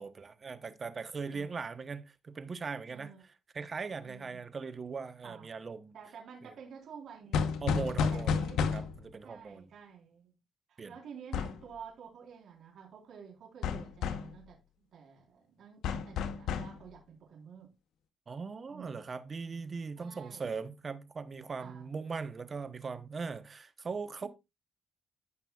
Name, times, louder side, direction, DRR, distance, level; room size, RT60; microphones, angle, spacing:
voice 1, 0.0-3.1 3.5-5.9 7.6-8.3 8.7-9.7 10.8-10.9 18.3-24.3, right 5 dB, 35° right, 1.0 m, -39 dB
voice 2, 1.3-1.6 2.9-3.2 4.0-4.4 5.2-5.5 5.9-7.5 8.1-8.6 9.2-10.3 10.7-17.7 18.7-19.0 20.0-20.5 21.6-21.9 24.2-24.3, right 7 dB, 70° right, 3.8 m, -50 dB
sound 1, 7.3-9.1 11.3-11.6 13.6-14.4 15.8-16.8, left 6 dB, 80° left, 1.0 m, -31 dB
15.5 x 5.8 x 2.4 m
cardioid pair, 90°, 0 cm